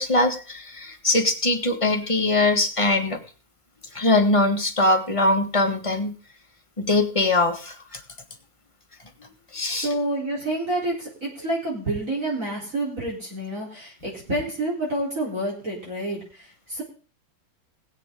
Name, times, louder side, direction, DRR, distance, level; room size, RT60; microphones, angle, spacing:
voice 1, 0.0-3.2 3.9-6.1 6.8-8.0 9.2-9.9, left 2 dB, 15° left, 3 dB, 1.6 m, -22 dB
voice 2, 9.7-16.8, right 1 dB, 40° right, -4 dB, 4.3 m, -28 dB
20.5 x 8.1 x 3.7 m, 0.38 s
omnidirectional pair, 2.1 m